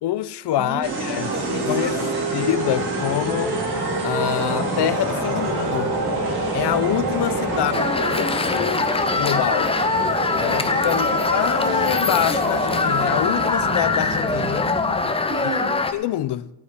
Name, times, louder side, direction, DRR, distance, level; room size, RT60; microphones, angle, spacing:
voice 1, 0.0-1.3 1.7-2.0 2.3-3.6 4.0-5.9 6.5-7.7 8.1-8.9 9.2-9.7 10.4-14.7 15.9-16.5, left 13 dB, 70° left, 0.5 m, -25 dB
voice 2, 0.6-2.4 4.2-4.6 7.5-7.8 10.8-11.2 15.3-16.0, right 4 dB, 25° right, 0.9 m, -34 dB
sound 1, 0.8-15.1, right 1 dB, 65° right, 2.6 m, -26 dB
sound 2, 7.7-15.9, left 3 dB, 15° left, 0.5 m, -23 dB
17.5 x 8.5 x 3.6 m
wide cardioid pair, 180°, 42 cm